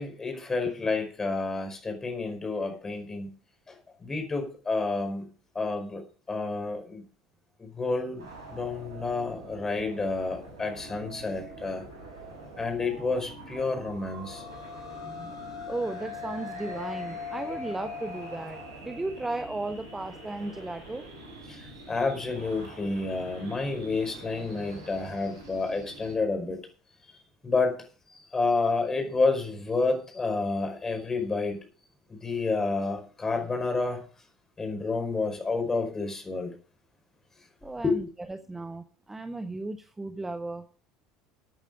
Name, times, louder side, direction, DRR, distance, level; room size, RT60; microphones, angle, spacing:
voice 1, 0.0-3.3 4.0-5.3 5.6-6.0 6.3-7.0 7.8-8.2 8.5-11.8 12.6-14.4 21.9-26.6 27.4-27.8 28.3-31.6 32.2-34.0 34.6-36.5 37.8-38.0, left 3 dB, 20° left, 5.2 m, -29 dB
sound 1, 8.1-26.1, right 2 dB, 75° right, 5.6 m, -45 dB
sound 2, 13.8-22.4, left 7 dB, 90° left, 3.5 m, -42 dB
voice 2, 14.8-15.3 15.7-21.1 37.6-40.8, right 2 dB, 10° right, 1.2 m, -35 dB
15.5 x 9.0 x 5.0 m
figure-of-eight pair, 65°, 2 cm